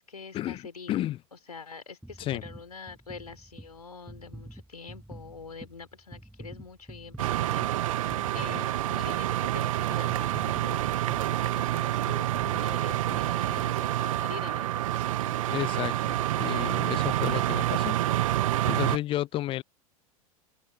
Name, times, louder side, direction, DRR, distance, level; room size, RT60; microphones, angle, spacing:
voice 1, 0.0-15.3 15.6-15.9, left 5 dB, 80° left, 3.8 m, -45 dB
voice 2, 0.9-1.2 2.2-2.4 15.2-18.0 18.7-19.6, left 14 dB, 30° left, 0.6 m, -32 dB
sound 1, 2.0-14.4 15.0-15.1, right 1 dB, 5° right, 5.8 m, -47 dB
sound 2, 7.2-19.0, right 14 dB, 60° right, 0.7 m, -28 dB
open air
figure-of-eight pair, 90°, 19 cm